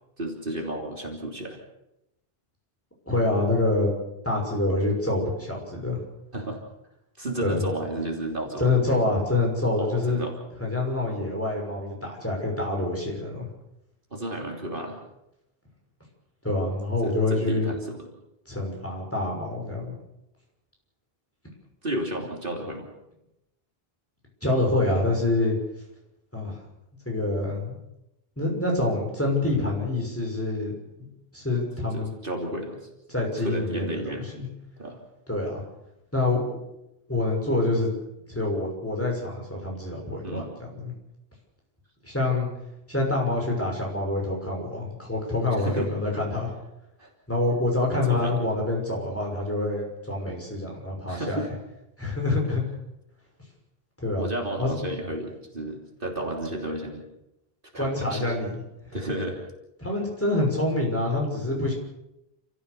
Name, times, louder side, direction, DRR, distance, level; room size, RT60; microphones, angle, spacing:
voice 1, 0.2-1.6 6.3-6.6 7.2-8.7 9.8-10.4 14.1-15.0 17.0-18.1 21.8-22.9 31.9-32.9 33.4-34.3 34.8-35.0 40.2-40.5 45.6-45.9 47.0-47.1 47.9-48.4 51.1-51.5 54.2-57.0 57.7-58.3 58.9-59.4, right 1 dB, 60° right, 1 dB, 3.4 m, -32 dB
voice 2, 3.1-3.9 4.2-6.0 7.4-7.6 8.6-10.2 10.6-13.5 16.4-17.7 18.5-20.0 24.4-25.6 26.3-26.6 27.1-27.8 28.4-30.7 31.3-32.1 33.1-34.5 35.3-35.6 36.1-36.4 37.1-37.9 38.3-40.9 42.0-42.5 42.9-46.5 47.3-51.4 52.0-52.6 54.0-54.3 54.6-54.7 57.8-58.5 59.8-61.7, left 2 dB, 15° left, -1 dB, 6.2 m, -26 dB
29.5 x 14.5 x 6.8 m, 0.87 s
omnidirectional pair, 1.0 m